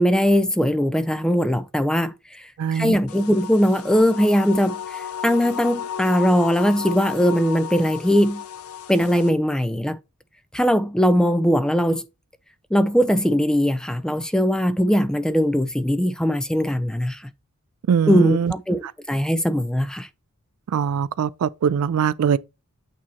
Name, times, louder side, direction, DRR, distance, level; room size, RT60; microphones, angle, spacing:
voice 1, 0.0-8.4 8.9-10.0 10.5-12.0 12.7-17.2 18.1-20.1, equal, 5° left, 0.4 m, -20 dB
voice 2, 2.6-3.0 17.9-18.5 20.7-22.4, right 7 dB, 75° right, 0.3 m, -21 dB
sound 1, 3.1-9.3, left 9 dB, 75° left, 0.6 m, -34 dB
8.5 x 2.9 x 4.2 m
head